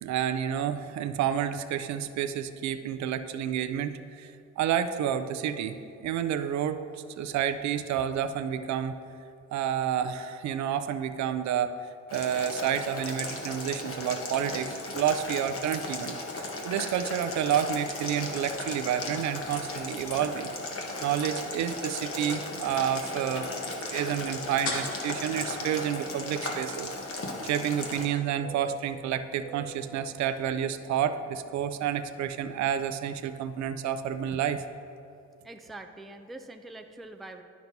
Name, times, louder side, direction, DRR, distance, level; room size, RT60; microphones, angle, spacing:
voice 1, 0.0-6.8 7.1-9.0 9.5-11.7 12.1-20.5 21.0-23.5 23.8-34.6, right 9 dB, 65° right, 10 dB, 0.5 m, -30 dB
Boiling, 12.1-28.1, left 2 dB, 45° left, 1.1 m, -36 dB
sound 1, 20.9-23.3 23.6-23.7 23.9-24.2 24.6-26.0, left 3 dB, 75° left, 1.4 m, -40 dB
Fixed-wing aircraft airplane, 22.1-25.9 26.2-32.1, right 8 dB, 40° right, 0.8 m, -51 dB
voice 2, 35.4-37.4, right 2 dB, ahead, 5 dB, 0.3 m, -44 dB
10.0 x 5.9 x 2.7 m, 2.7 s
cardioid pair, 90°, 30 cm